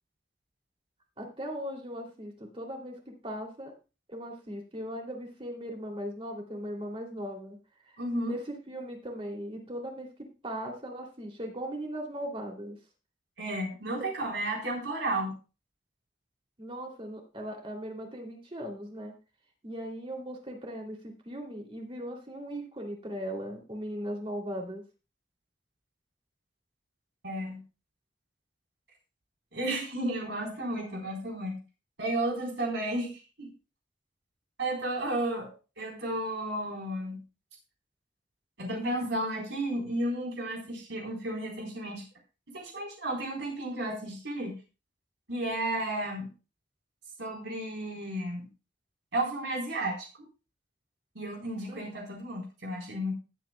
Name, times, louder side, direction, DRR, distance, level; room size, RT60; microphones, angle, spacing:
voice 1, 1.2-3.7 4.1-7.6 8.2-10.1 10.4-12.8 14.0-14.1 16.6-19.1 19.6-24.8 51.7-51.8, equal, 30° right, 2 dB, 2.8 m, -38 dB
voice 2, 8.0-8.3 13.4-15.3 27.2-27.6 29.5-31.6 32.0-33.5 34.6-35.5 35.8-37.2 38.6-42.0 42.5-44.6 45.3-46.3 47.2-48.5 49.1-50.1 51.2-53.1, right 1 dB, 75° right, -1 dB, 3.9 m, -33 dB
18.5 x 8.2 x 2.2 m, 0.31 s
head